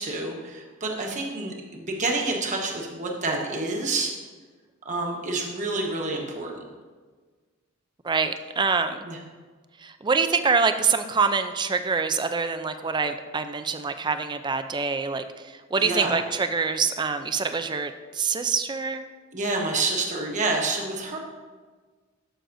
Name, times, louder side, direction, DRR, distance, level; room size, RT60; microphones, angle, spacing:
voice 1, 0.0-4.1 4.8-6.5 9.0-9.2 15.8-16.1 19.3-21.2, right 3 dB, 35° right, 0 dB, 1.2 m, -28 dB
voice 2, 8.0-9.0 9.8-15.2 15.7-19.0, right 5 dB, 20° right, 9 dB, 0.4 m, -25 dB
12.5 x 6.4 x 2.6 m, 1.4 s
head